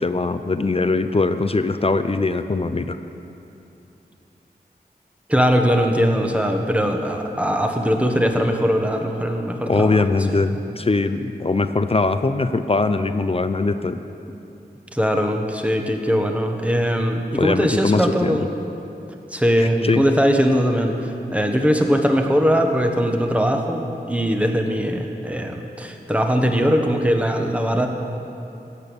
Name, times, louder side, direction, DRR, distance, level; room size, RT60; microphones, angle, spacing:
voice 1, 0.0-3.0 9.7-14.0 17.4-18.4 19.6-20.0, left 3 dB, 35° left, 10 dB, 0.6 m, -21 dB
voice 2, 5.3-9.9 10.3-10.4 14.9-18.5 19.3-27.9, equal, 10° right, 3 dB, 1.4 m, -20 dB
16.5 x 8.3 x 7.1 m, 2.9 s
wide cardioid pair, 65°, 17 cm